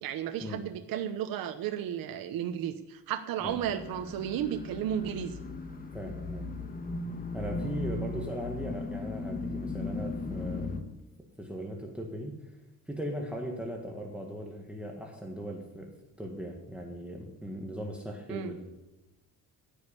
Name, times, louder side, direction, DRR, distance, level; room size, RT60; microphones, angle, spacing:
voice 1, 0.0-5.4 18.3-18.5, right 9 dB, 70° right, 7 dB, 1.0 m, -33 dB
sound 1, 3.4-10.8, left 3 dB, 25° left, 1.4 m, -37 dB
voice 2, 5.9-6.5 7.3-10.7 11.4-12.4 12.9-15.9 16.2-18.7, equal, 5° right, 0 dB, 1.7 m, -38 dB
15.0 x 6.5 x 9.8 m, 0.99 s
cardioid pair, 140°, 36 cm